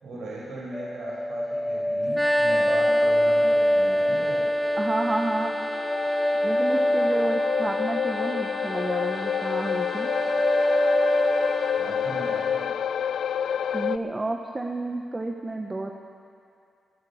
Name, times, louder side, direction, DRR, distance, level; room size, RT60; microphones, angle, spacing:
voice 1, 0.0-4.4 11.8-12.6, right 2 dB, 80° right, -4 dB, 5.2 m, -37 dB
sound 1, 0.7-8.9 9.1-9.7 10.0-11.8, equal, 15° left, 2.2 m, -25 dB
sound 2, 2.1-12.8, right 1 dB, ahead, 2.0 m, -35 dB
sound 3, 3.6-14.0, left 8 dB, 80° left, 0.3 m, -29 dB
voice 2, 4.8-5.5 6.4-10.1 13.7-15.9, right 2 dB, 30° right, 2 dB, 1.2 m, -30 dB
20.5 x 9.5 x 7.3 m, 2.4 s
supercardioid pair, 50°, 0 cm